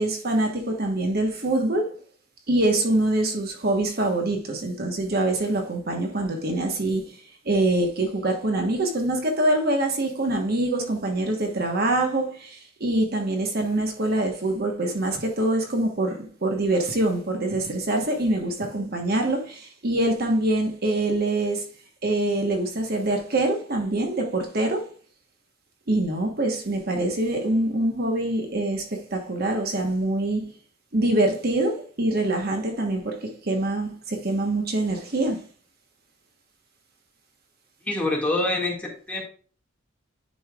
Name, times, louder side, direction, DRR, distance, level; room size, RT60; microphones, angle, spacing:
voice 1, 0.0-1.9 2.5-7.2 7.4-21.6 22.0-24.8 25.9-30.5 30.9-35.4, right 2 dB, 50° right, 1.2 m, -24 dB
voice 2, 37.9-39.2, left 2 dB, 5° left, 1.9 m, -26 dB
10.0 x 5.5 x 2.4 m
head